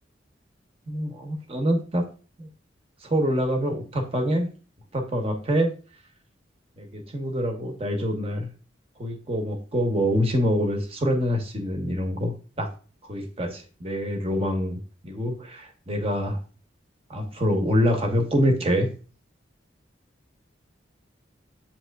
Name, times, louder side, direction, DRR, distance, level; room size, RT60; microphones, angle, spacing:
voice 1, 0.9-2.0 2.4-2.5 3.0-4.5 4.9-5.7 6.8-8.5 9.0-12.7 13.1-16.4 17.1-18.9, equal, 30° right, 3 dB, 0.8 m, -25 dB
7.3 x 2.9 x 2.2 m, 0.37 s
head